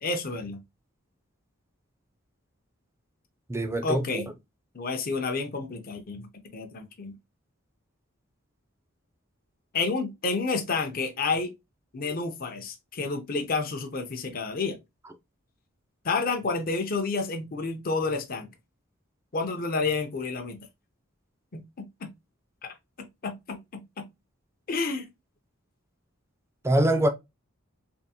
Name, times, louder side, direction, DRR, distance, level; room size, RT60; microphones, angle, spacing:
voice 1, 0.0-0.6 3.8-4.3 4.7-6.2 6.5-7.2 9.7-11.5 11.9-14.8 16.0-18.5 19.3-20.6 21.5-22.1 22.6-24.1 24.7-25.1, left 4 dB, 45° left, 0.6 m, -30 dB
voice 2, 3.5-4.2 26.6-27.1, right 1 dB, 15° right, 0.5 m, -24 dB
3.6 x 3.0 x 2.8 m
head